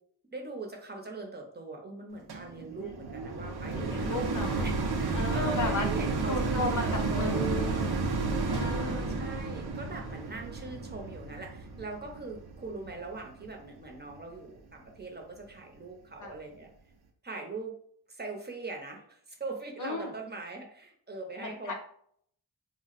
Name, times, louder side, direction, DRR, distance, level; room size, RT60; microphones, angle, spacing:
voice 1, 0.3-4.2 4.6-7.6 8.6-16.7 17.2-17.7 18.1-21.7, right 2 dB, 25° right, 1 dB, 0.7 m, -41 dB
sound 1, 2.3-13.6 14.2-14.3, right 3 dB, 70° right, 0.6 m, -32 dB
voice 2, 2.8-3.2 3.7-4.7 5.1-5.9 6.3-7.9 8.5-9.0 16.2-16.4 19.8-20.1 21.4-21.7, left 2 dB, 50° left, 3 dB, 0.5 m, -35 dB
2.3 x 2.1 x 3.9 m, 0.64 s
cardioid pair, 70°, 40 cm